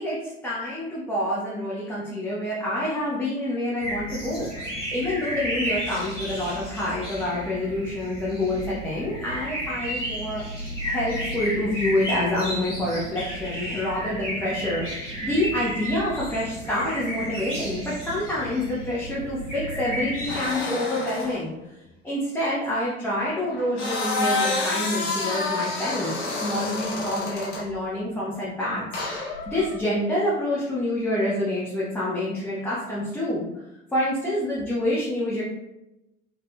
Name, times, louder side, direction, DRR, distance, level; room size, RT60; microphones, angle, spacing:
voice 1, 0.0-4.5 4.9-10.4 10.8-21.5 22.0-28.8 29.5-33.4 33.9-35.4, left 1 dB, 5° left, -8 dB, 0.9 m, -27 dB
sound 1, 3.8-20.4, right 1 dB, 90° left, 1.3 m, -33 dB
sound 2, 20.3-21.4 23.5-27.7 28.9-29.7, left 3 dB, 65° left, 1.1 m, -28 dB
3.9 x 3.8 x 2.2 m, 0.94 s
figure-of-eight pair, 60°, 36 cm